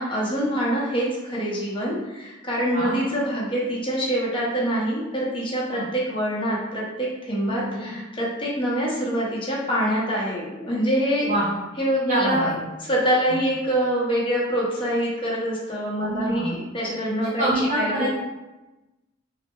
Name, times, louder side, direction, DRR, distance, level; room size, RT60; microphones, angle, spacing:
voice 1, 0.0-11.3 11.8-12.5 12.9-18.1, equal, 25° left, -5 dB, 0.8 m, -25 dB
voice 2, 7.4-7.9 11.3-11.5 12.1-12.6 13.3-13.4 16.0-16.5 17.4-18.1, right 1 dB, 35° right, -10 dB, 0.6 m, -26 dB
3.2 x 2.1 x 2.9 m, 1.0 s
head